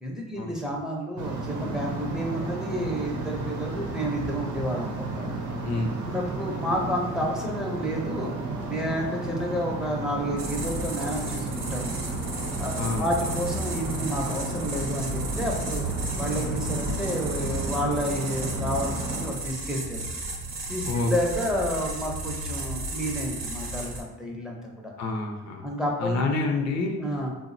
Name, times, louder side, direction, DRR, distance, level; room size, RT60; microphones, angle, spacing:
voice 1, 0.0-5.3 6.0-8.3 8.7-12.0 12.6-12.7 13.0-15.8 16.2-20.0 20.7-24.9 25.6-26.3 27.0-27.3, equal, ahead, -1 dB, 0.5 m, -30 dB
sound 1, 1.2-19.3, right 2 dB, 85° right, 0.6 m, -33 dB
voice 2, 5.6-6.0 12.7-13.1 20.9-21.1 25.0-25.7 26.0-27.1, left 3 dB, 60° left, 3 dB, 0.5 m, -28 dB
sound 2, 10.4-24.0, right 1 dB, 45° right, 0.6 m, -34 dB
3.5 x 2.0 x 2.5 m, 1.1 s
cardioid pair, 90°, 30 cm